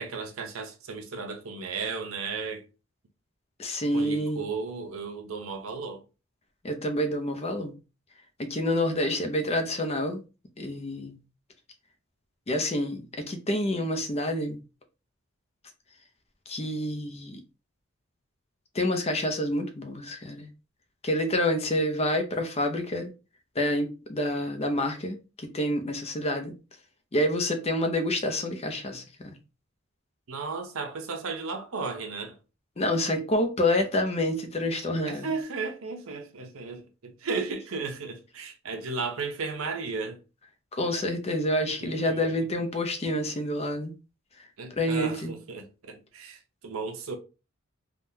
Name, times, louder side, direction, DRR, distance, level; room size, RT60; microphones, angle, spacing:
voice 1, 0.0-2.7 3.9-6.0 30.3-32.4 35.1-40.2 41.8-42.2 44.6-47.1, right 4 dB, 75° right, 0.6 m, -34 dB
voice 2, 3.6-4.4 6.6-7.7 8.4-10.2 10.6-11.2 12.5-14.6 16.5-17.4 18.7-20.5 21.0-23.1 23.6-26.5 27.1-29.4 32.8-35.3 40.7-43.9 44.8-45.3, left 1 dB, 30° left, 0.6 m, -28 dB
3.5 x 2.3 x 2.7 m
head